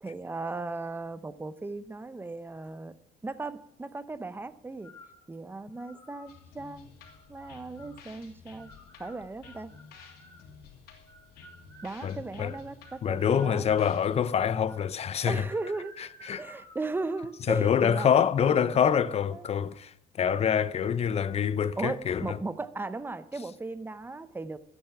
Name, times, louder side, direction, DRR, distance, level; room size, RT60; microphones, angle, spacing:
voice 1, 0.0-4.9 5.3-6.9 7.3-8.7 9.0-9.7 11.8-13.7 15.3-15.9 16.4-18.1 18.4-18.8 19.3-19.4 21.8-24.6, right 3 dB, 10° right, 0.8 m, -37 dB
sound 1, 4.8-5.2 5.8-6.4 7.0-8.0 8.6-10.5 11.1-13.9 14.4-14.9 15.4-17.4 17.8-18.1 18.4-18.8, equal, 15° left, 2.9 m, -54 dB
sound 2, 6.3-14.3, left 5 dB, 65° left, 2.8 m, -52 dB
voice 2, 12.0-12.6 13.0-15.5 16.0-16.4 17.5-22.4, left 8 dB, 40° left, 0.7 m, -26 dB
13.5 x 9.1 x 5.9 m
cardioid pair, 110°, 17 cm